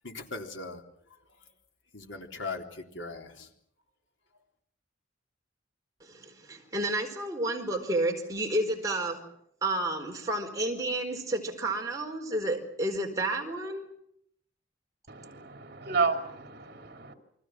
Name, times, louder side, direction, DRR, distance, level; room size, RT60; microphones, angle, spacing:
voice 1, 0.0-0.8 1.9-3.5, left 3 dB, 90° left, 3.7 m, -39 dB
voice 2, 6.0-9.3 9.6-13.8, right 1 dB, 20° right, 4.4 m, -31 dB
voice 3, 15.1-17.1, right 4 dB, 55° right, 2.9 m, -31 dB
29.5 x 24.0 x 6.2 m
head